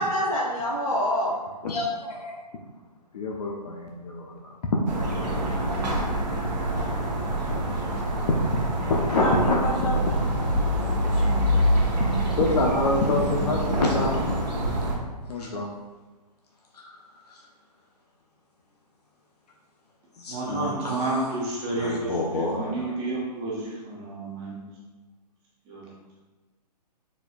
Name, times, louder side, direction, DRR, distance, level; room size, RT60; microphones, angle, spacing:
voice 1, 0.0-1.4 9.1-9.3 9.6-11.6, equal, 55° left, -5 dB, 1.4 m, -29 dB
voice 2, 1.6-2.4 3.1-4.3 4.7-4.8 7.9-8.0 8.4-8.6 8.9-10.0 12.0-12.1 12.4-14.2 15.3-15.7 16.7-17.0 17.3-17.4 20.2-21.3 21.7-23.0, left 2 dB, 70° left, -1 dB, 0.6 m, -27 dB
sound 1, 4.9-15.0, right 1 dB, 85° right, 0.9 m, -25 dB
voice 3, 20.3-24.7 25.7-25.9, right 2 dB, 20° right, -5 dB, 0.5 m, -30 dB
4.2 x 2.5 x 2.4 m, 1.2 s
hypercardioid pair, 145°, 21 cm